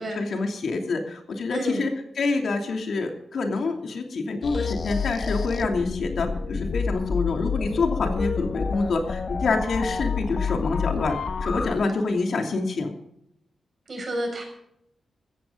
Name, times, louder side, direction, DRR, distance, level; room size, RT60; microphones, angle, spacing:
voice 1, 0.0-11.2 11.4-12.9, left 3 dB, 65° left, 3 dB, 2.9 m, -27 dB
voice 2, 1.5-1.9 13.9-14.4, right 1 dB, 40° right, 3 dB, 6.5 m, -30 dB
sound 1, 4.4-11.8, left 5 dB, 45° left, 1.0 m, -28 dB
16.0 x 14.5 x 3.9 m, 0.77 s
wide cardioid pair, 115°, 0 cm